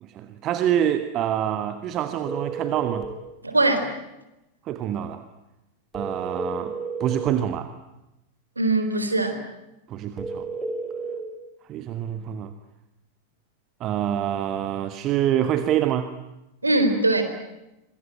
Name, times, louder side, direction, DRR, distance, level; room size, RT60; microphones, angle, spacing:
voice 1, 0.0-3.1 4.6-5.2 5.9-7.7 9.9-10.5 11.7-12.5 13.8-16.1, right 11 dB, 35° right, 10 dB, 1.4 m, -26 dB
sound 1, 2.3-3.1 5.9-7.4 10.2-11.2, right 4 dB, 5° right, 6.3 m, -31 dB
voice 2, 3.4-3.9 8.6-9.4 16.6-17.2, right 2 dB, 80° right, 8 dB, 4.1 m, -21 dB
27.0 x 23.0 x 9.1 m, 0.94 s
figure-of-eight pair, 90°, 0 cm